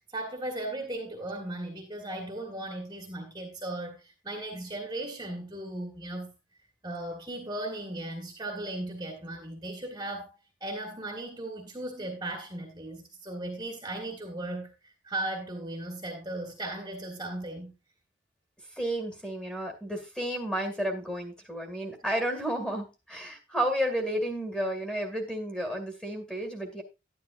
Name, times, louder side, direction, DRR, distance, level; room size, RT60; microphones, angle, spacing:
voice 1, 0.1-6.3 6.8-10.3 10.6-17.7, right 1 dB, 20° right, 1.7 m, -37 dB
voice 2, 18.8-26.8, right 1 dB, 5° left, 2.2 m, -32 dB
11.0 x 10.5 x 2.6 m
head